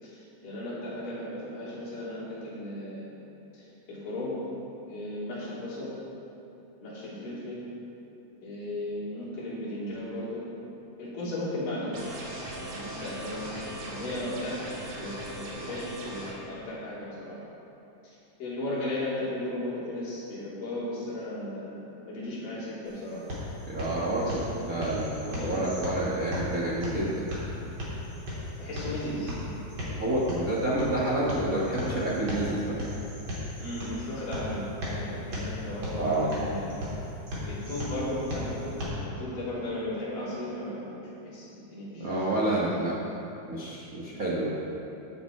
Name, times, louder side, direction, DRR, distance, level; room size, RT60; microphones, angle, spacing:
voice 1, 0.0-3.1 3.5-4.4 4.9-5.9 6.8-7.6 8.4-10.4 11.0-12.0 12.6-17.4 18.0-23.2 24.1-24.5 24.8-25.0 25.2-25.6 28.6-29.6 33.6-36.7 37.5-41.0 41.2-42.1 44.1-44.3, left 1 dB, 80° left, -8 dB, 4.7 m, -36 dB
sound 1, 11.9-16.3, right 1 dB, 90° right, 3.7 m, -39 dB
sound 2, 22.8-38.8, left 1 dB, 40° right, 3.4 m, -36 dB
voice 2, 23.7-27.2 30.0-32.8 36.0-36.5 42.0-43.0 43.4-44.6, right 1 dB, 60° right, -6 dB, 0.8 m, -29 dB
15.0 x 7.8 x 4.6 m, 2.9 s
omnidirectional pair, 3.8 m